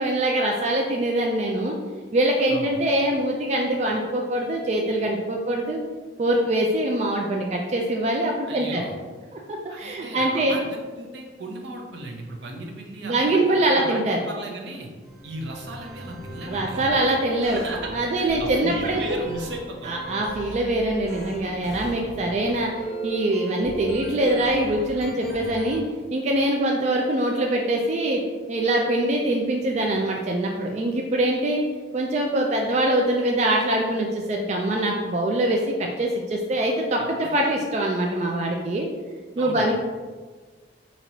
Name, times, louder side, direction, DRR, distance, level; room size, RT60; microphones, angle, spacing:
voice 1, 0.0-1.8 2.1-5.8 6.2-8.8 9.3-10.6 13.0-14.2 16.4-17.6 17.9-19.0 19.9-22.7 23.0-25.8 26.1-28.2 28.5-31.6 31.9-38.9 39.4-39.7, right 1 dB, 40° right, 0 dB, 0.3 m, -23 dB
voice 2, 2.5-2.9 8.5-8.9 9.7-14.9 15.2-16.8 17.5-20.0 37.0-37.3 39.4-39.7, right 2 dB, 70° right, 1 dB, 0.6 m, -36 dB
sound 1, 15.0-25.8, right 1 dB, ahead, 0.8 m, -38 dB
4.4 x 2.9 x 2.7 m, 1.4 s
head